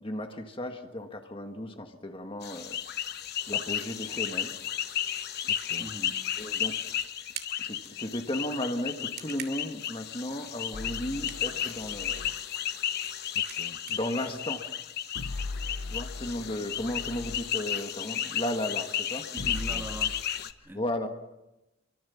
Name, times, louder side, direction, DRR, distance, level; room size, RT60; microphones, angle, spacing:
voice 1, 0.0-2.8 3.5-4.5 6.4-6.8 7.6-12.2 13.9-14.7 15.9-19.3 20.7-21.1, left 1 dB, 25° left, 5 dB, 1.6 m, -34 dB
sound 1, 2.4-20.5, left 10 dB, 50° left, 1.1 m, -33 dB
voice 2, 5.4-6.3 19.3-20.2 20.6-20.9, right 1 dB, 10° right, 4 dB, 1.8 m, -41 dB
sound 2, 6.2-15.4, right 9 dB, 45° right, 2.2 m, -50 dB
sound 3, 10.7-12.4 15.1-17.5 19.4-20.2, left 3 dB, 75° left, 0.8 m, -39 dB
26.5 x 24.0 x 7.2 m, 0.98 s
head